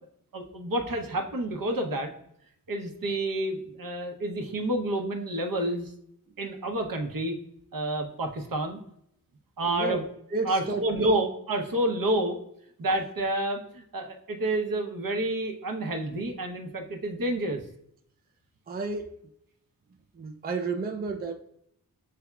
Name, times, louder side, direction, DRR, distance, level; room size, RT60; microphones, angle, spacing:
voice 1, 0.3-2.1 2.7-5.9 6.4-7.3 7.7-8.8 9.6-10.0 10.5-12.4 12.8-17.6, right 1 dB, 60° right, 0.8 m, -29 dB
voice 2, 9.7-10.0 10.3-11.1 18.7-19.2 20.1-21.3, right 4 dB, 25° right, 0.4 m, -32 dB
5.9 x 3.4 x 2.2 m
cardioid pair, 50°, 38 cm